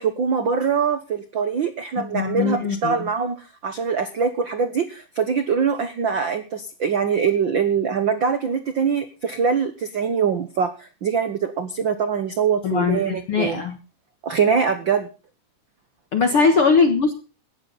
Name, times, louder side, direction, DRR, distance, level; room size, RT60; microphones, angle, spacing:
voice 1, 0.0-13.6 14.2-15.1 16.3-16.5, right 6 dB, 85° right, 10 dB, 1.0 m, -23 dB
voice 2, 2.0-3.0 12.6-13.8 16.1-17.1, left 5 dB, 50° left, 7 dB, 1.8 m, -20 dB
18.0 x 13.5 x 4.1 m, 0.33 s
omnidirectional pair, 4.0 m